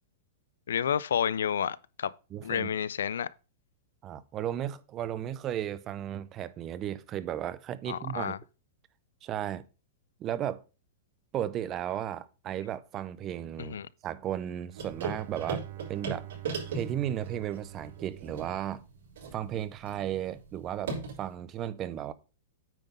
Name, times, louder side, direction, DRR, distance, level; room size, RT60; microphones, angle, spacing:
voice 1, 0.7-2.1 2.4-3.3 7.9-8.4 13.6-13.9, left 8 dB, 90° left, 0.4 m, -30 dB
voice 2, 2.3-2.7 4.0-8.4 9.2-9.6 10.2-10.6 11.3-16.2 16.7-18.8 19.3-22.1, right 11 dB, 25° right, 0.6 m, -35 dB
Bowed string instrument, 14.7-19.3, right 16 dB, 55° right, 0.8 m, -46 dB
sound 1, 14.8-21.3, right 4 dB, 75° right, 4.0 m, -39 dB
9.1 x 3.9 x 5.2 m
hypercardioid pair, 150°, 0 cm